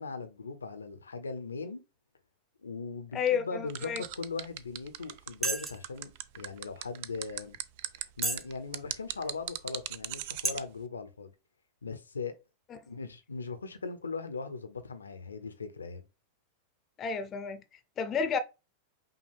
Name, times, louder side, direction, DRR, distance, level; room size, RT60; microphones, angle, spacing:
voice 1, 0.0-1.8 2.6-7.6 8.0-11.3 11.8-12.4 12.9-16.0, left 4 dB, 75° left, 0.6 m, -39 dB
voice 2, 3.1-4.0 12.7-12.8 17.0-17.6 18.0-18.4, left 6 dB, 25° left, 0.6 m, -31 dB
sound 1, 3.7-10.6, right 13 dB, 50° right, 0.3 m, -38 dB
sound 2, 4.7-4.8 5.4-5.9 6.6-6.7 7.3-7.4 8.2-8.5 9.1-9.2 9.9-10.1 10.4-10.5, right 2 dB, 10° right, 0.7 m, -31 dB
5.5 x 2.3 x 3.4 m
figure-of-eight pair, 90°, 0 cm